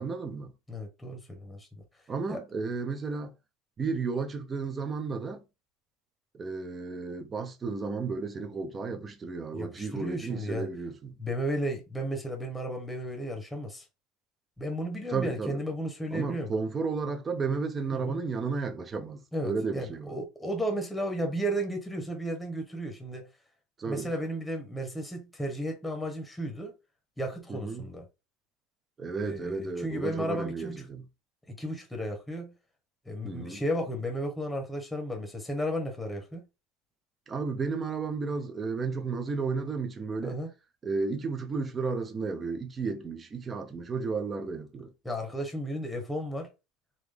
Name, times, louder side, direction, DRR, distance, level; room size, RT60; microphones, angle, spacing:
voice 1, 0.0-0.5 2.1-3.3 3.8-5.4 6.3-11.1 15.1-15.6 16.1-20.1 23.8-24.1 27.5-27.9 29.0-31.0 33.2-33.6 37.3-40.4 40.8-44.9, right 4 dB, 20° right, 0.7 m, -33 dB
voice 2, 0.7-1.8 2.3-2.4 9.5-10.7 11.2-13.9 14.6-16.5 17.9-18.2 19.3-23.3 23.9-26.7 27.2-28.1 29.2-30.9 31.5-32.5 33.0-36.5 40.2-40.5 45.0-46.5, equal, 5° left, 1.1 m, -34 dB
3.9 x 2.9 x 3.4 m
supercardioid pair, 130°, 0 cm